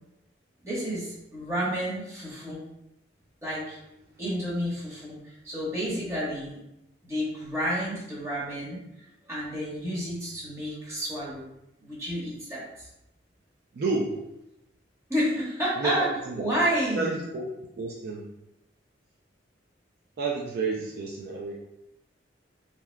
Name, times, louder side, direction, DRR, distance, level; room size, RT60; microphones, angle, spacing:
voice 1, 0.6-2.6 3.4-3.8 4.2-6.6 7.0-8.8 9.3-11.4 11.8-12.9 15.1-16.1 16.3-17.2, equal, 15° right, -8 dB, 1.1 m, -30 dB
voice 2, 13.7-14.2 15.8-16.4 17.0-17.5 17.8-18.2 20.2-21.6, right 3 dB, 55° right, -2 dB, 0.4 m, -30 dB
3.3 x 2.8 x 2.2 m, 0.86 s
head